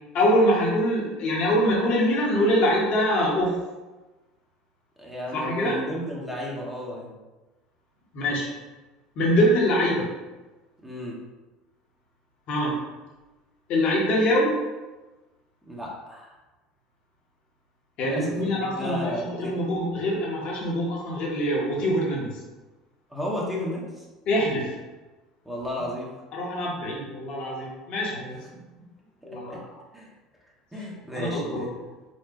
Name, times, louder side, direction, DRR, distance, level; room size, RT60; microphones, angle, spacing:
voice 1, 0.1-3.5 5.3-5.8 8.1-8.5 9.2-10.1 12.5-12.8 13.7-14.5 18.0-22.3 24.3-24.7 26.3-28.4 29.2-29.6 31.1-31.7, equal, 55° left, -3 dB, 1.0 m, -24 dB
voice 2, 5.0-7.1 10.8-11.2 15.7-16.3 18.1-19.6 23.1-24.1 25.4-26.1 29.2-29.6 29.9-30.1 30.7-31.7, equal, 10° right, -3 dB, 0.9 m, -33 dB
4.3 x 2.1 x 2.8 m, 1.2 s
hypercardioid pair, 75°, 2 cm